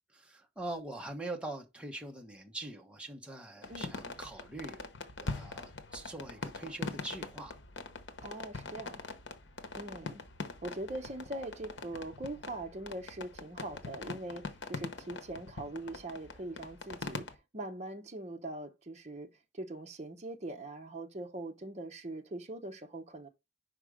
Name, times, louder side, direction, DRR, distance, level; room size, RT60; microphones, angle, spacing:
voice 1, 0.1-4.9 5.2-7.6 9.5-9.7, right 2 dB, 5° right, 1.1 m, -43 dB
sound 1, 3.6-17.3, left 3 dB, 85° left, 0.9 m, -43 dB
voice 2, 8.2-9.0 9.7-10.2 10.6-17.2 17.5-19.3 19.5-23.3, right 2 dB, 40° right, 0.9 m, -42 dB
5.2 x 5.1 x 4.9 m
head